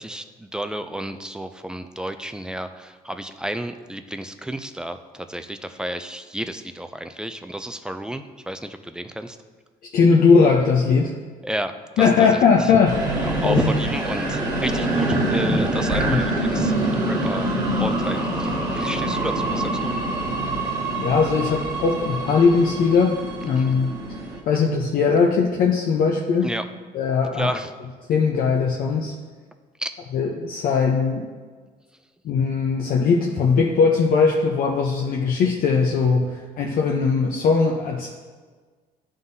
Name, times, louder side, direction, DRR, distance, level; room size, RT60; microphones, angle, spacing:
voice 1, 0.0-9.4 11.4-12.8 13.2-17.5 17.8-20.0 23.6-23.8 26.4-26.6 27.3-27.7 29.8-29.9, right 1 dB, 5° right, 9 dB, 0.3 m, -31 dB
voice 2, 9.9-11.2 12.0-13.7 15.9-16.2 21.0-24.0 24.5-26.5 26.9-27.5 28.1-29.1 30.1-31.3 32.2-38.1, left 5 dB, 60° left, 0 dB, 0.6 m, -19 dB
sound 1, 12.8-24.4, right 1 dB, 25° right, 1.6 m, -25 dB
11.0 x 3.7 x 2.7 m, 1.5 s
cardioid pair, 110°, 17 cm